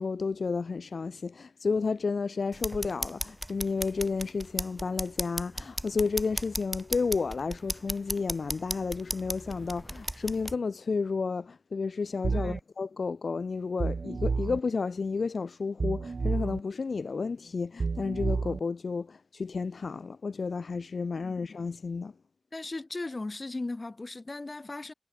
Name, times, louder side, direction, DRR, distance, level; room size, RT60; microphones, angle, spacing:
voice 1, 0.0-22.1, left 4 dB, 70° left, 0.4 m, -31 dB
sound 1, 2.5-10.5, right 1 dB, 10° right, 0.5 m, -36 dB
sound 2, 12.2-12.6 13.8-14.6 15.8-16.6 17.8-18.6, right 4 dB, 65° right, 0.4 m, -30 dB
voice 2, 22.5-24.9, left 2 dB, 35° left, 1.1 m, -37 dB
wide cardioid pair, 85°, 0 cm